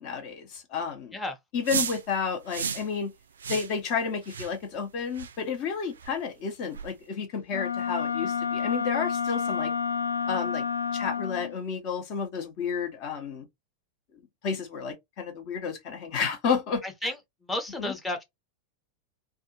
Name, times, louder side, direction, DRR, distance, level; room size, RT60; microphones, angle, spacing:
voice 1, 0.0-1.2 1.5-3.1 3.5-9.7 10.3-10.6 10.9-13.5 14.4-17.1 17.8-17.9, left 6 dB, 40° left, 0.8 m, -31 dB
sound 1, 1.7-2.0 2.5-2.9 3.4-3.7 4.2-4.5 5.1-5.3 6.0-6.1 6.7-6.9, right 7 dB, 65° right, 0.3 m, -32 dB
Wind instrument woodwind instrument, 7.5-11.6, left 6 dB, 75° left, 0.3 m, -29 dB
voice 2, 16.8-17.2 17.4-18.2, left 1 dB, 10° left, 0.7 m, -32 dB
2.6 x 2.3 x 2.6 m
figure-of-eight pair, 90°, 0 cm